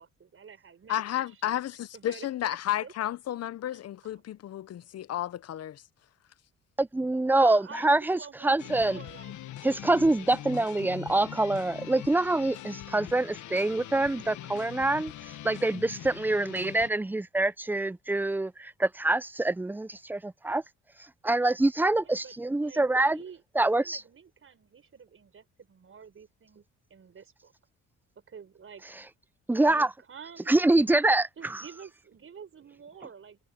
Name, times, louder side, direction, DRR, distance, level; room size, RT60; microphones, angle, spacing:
voice 1, 0.0-1.6 1.9-2.9 4.0-4.2 7.3-9.3 10.8-11.3 22.0-23.4 23.8-26.6 26.9-27.5 28.3-28.8 29.7-30.5 31.4-33.4, right 6 dB, 45° right, 5.3 m, -48 dB
voice 2, 0.9-1.7 2.0-5.8, left 12 dB, 55° left, 0.7 m, -32 dB
voice 3, 6.8-9.0 9.6-20.6 21.2-23.2 23.6-24.0 29.5-29.9 30.5-31.3, right 2 dB, 5° right, 0.5 m, -25 dB
sound 1, 8.6-16.9, left 12 dB, 75° left, 1.4 m, -43 dB
cardioid pair, 90°, 30 cm